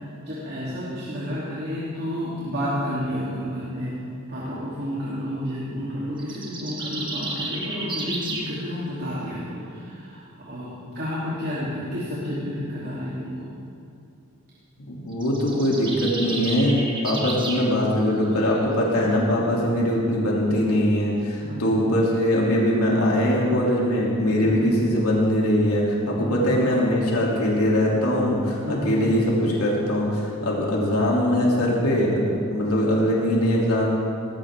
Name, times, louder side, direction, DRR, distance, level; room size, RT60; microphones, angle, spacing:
voice 1, 0.2-4.0 4.3-10.7 10.9-13.5 17.1-17.4 21.4-21.7 24.4-24.7 26.1-26.5 28.6-29.0, equal, 45° right, -9 dB, 3.1 m, -31 dB
sound 1, 6.2-8.5 15.1-17.7, right 2 dB, 20° right, 1.7 m, -32 dB
voice 2, 14.9-33.8, equal, 85° left, -4 dB, 3.0 m, -22 dB
19.5 x 15.5 x 3.7 m, 2.6 s
head